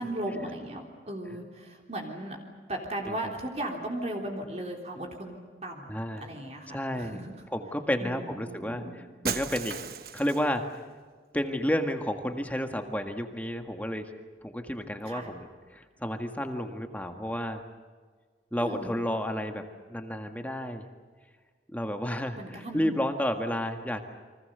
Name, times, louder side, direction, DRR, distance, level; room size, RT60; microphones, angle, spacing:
voice 1, 0.0-2.4 2.7-5.4 5.6-7.3 8.0-9.0 15.1-15.3 18.6-19.0 22.4-23.0, right 1 dB, 40° right, 1 dB, 3.6 m, -36 dB
voice 2, 5.9-6.3 6.7-7.2 7.5-9.8 10.1-10.6 11.3-14.1 14.4-17.6 18.5-19.6 19.9-20.9 21.7-24.0, equal, 10° left, 5 dB, 1.7 m, -31 dB
Shatter, 9.2-10.6, right 6 dB, 55° right, 1.2 m, -35 dB
30.0 x 24.5 x 6.8 m, 1.5 s
head